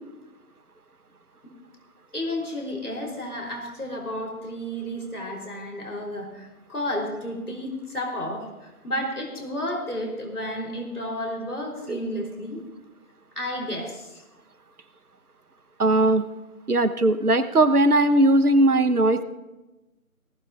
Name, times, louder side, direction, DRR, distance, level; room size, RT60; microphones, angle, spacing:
voice 1, 2.1-12.6 13.4-14.2, left 1 dB, 85° left, -1 dB, 3.8 m, -32 dB
voice 2, 15.8-16.3 16.7-19.2, right 1 dB, 90° right, 11 dB, 1.1 m, -19 dB
19.0 x 15.0 x 2.5 m, 1.1 s
figure-of-eight pair, 165°, 44 cm